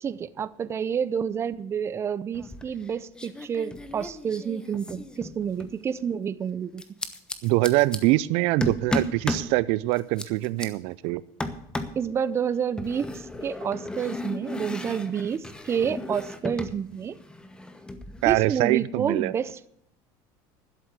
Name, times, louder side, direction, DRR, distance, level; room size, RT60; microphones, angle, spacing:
voice 1, 0.0-6.8 12.0-17.2 18.2-19.7, right 7 dB, 25° right, 0.6 m, -29 dB
sound 1, 2.3-2.9 3.2-5.8 6.8-8.0 8.6-9.5 9.9-10.7 11.4-12.0 12.8-16.8 17.0-18.3, left 2 dB, 10° left, 1.1 m, -34 dB
voice 2, 7.4-11.2 18.2-19.3, right 19 dB, 70° right, 0.5 m, -24 dB
12.0 x 7.6 x 8.2 m
cardioid pair, 135°, 10 cm